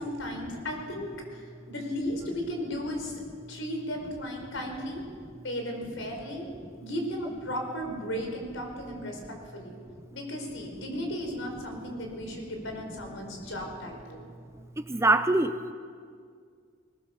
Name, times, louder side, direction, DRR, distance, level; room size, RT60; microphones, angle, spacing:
voice 1, 0.0-3.2 3.5-5.0 5.4-6.4 6.8-9.8 10.1-14.2, equal, 75° left, 2 dB, 4.7 m, -35 dB
voice 2, 14.8-15.7, right 2 dB, 15° right, 10 dB, 0.6 m, -24 dB
21.5 x 18.5 x 7.2 m, 2.1 s
head